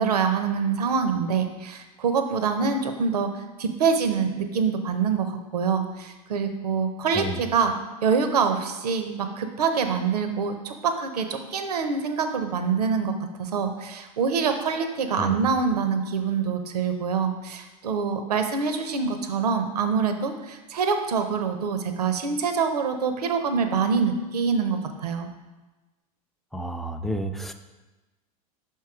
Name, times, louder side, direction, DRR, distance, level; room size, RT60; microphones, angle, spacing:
voice 1, 0.0-3.3 3.6-13.1 13.4-25.3, right 5 dB, 90° right, 7 dB, 0.6 m, -25 dB
voice 2, 7.1-7.5 15.2-15.5 26.5-27.5, right 1 dB, ahead, 7 dB, 0.4 m, -31 dB
5.6 x 4.6 x 4.8 m, 1.1 s
hypercardioid pair, 100°, 20 cm